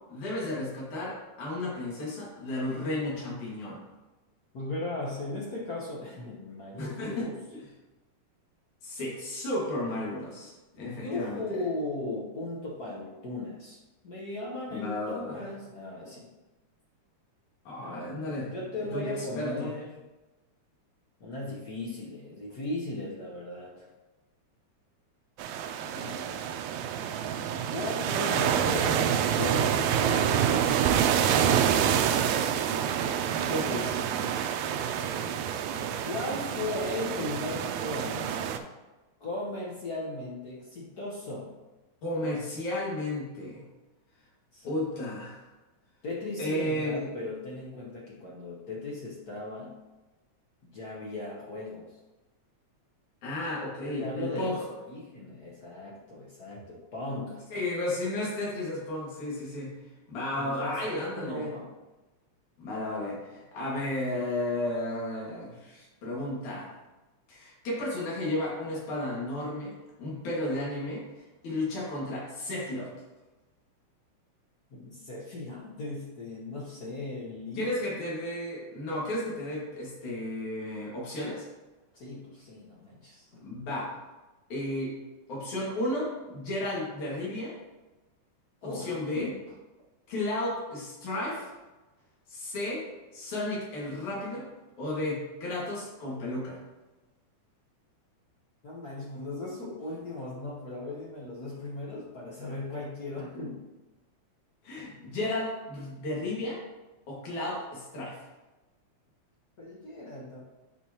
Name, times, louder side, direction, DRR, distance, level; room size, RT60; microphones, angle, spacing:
voice 1, 0.1-3.8 6.8-7.3 8.8-11.4 14.7-15.4 17.7-19.7 25.8-26.2 33.5-34.0 42.0-43.6 44.7-45.4 46.4-47.1 53.2-54.6 57.5-59.8 60.1-61.5 62.6-66.7 67.3-72.9 77.6-81.5 83.4-83.9 84.5-84.9 85.3-87.5 88.6-89.3 90.1-91.5 92.3-92.8 93.1-94.4 94.8-96.6 104.6-106.6 107.1-108.2, left 1 dB, 85° left, -5 dB, 3.4 m, -33 dB
voice 2, 4.5-7.3 10.9-16.3 17.8-19.9 21.2-23.9 27.7-29.1 29.3-31.5 36.0-38.4 39.2-41.5 44.5-44.7 46.0-49.7 50.6-51.9 53.6-57.4 60.4-61.7 74.7-77.7 81.9-83.4 88.6-89.3 98.6-103.6 109.6-110.4, left 2 dB, 60° left, -4 dB, 1.0 m, -37 dB
sound 1, 25.4-38.6, right 8 dB, 90° right, 1.9 m, -27 dB
10.0 x 4.7 x 2.9 m, 1.1 s
omnidirectional pair, 3.3 m